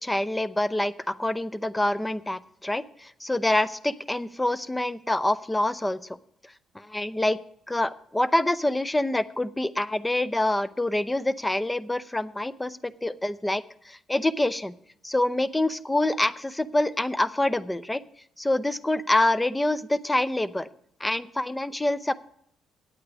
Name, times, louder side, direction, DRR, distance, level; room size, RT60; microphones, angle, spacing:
voice 1, 0.0-6.2 6.7-7.4 7.7-14.7 15.0-18.0 18.4-20.7 21.0-22.1, left 1 dB, 10° left, 18 dB, 0.6 m, -26 dB
9.5 x 8.5 x 6.2 m, 0.70 s
cardioid pair, 85°, 0 cm